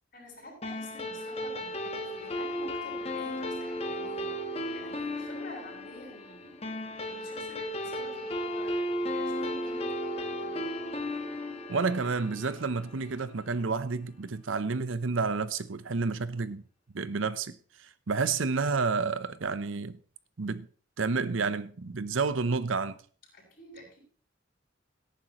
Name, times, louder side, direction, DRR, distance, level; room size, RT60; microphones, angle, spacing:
voice 1, 0.1-6.6 7.0-10.7 23.3-24.0, left 1 dB, 45° left, 6.5 m, -49 dB
sound 1, 0.6-13.4, left 1 dB, 30° left, 1.2 m, -35 dB
voice 2, 11.7-16.6 16.9-20.0 20.4-20.7 21.0-23.0, right 4 dB, 80° right, 0.7 m, -30 dB
17.5 x 10.0 x 3.0 m
head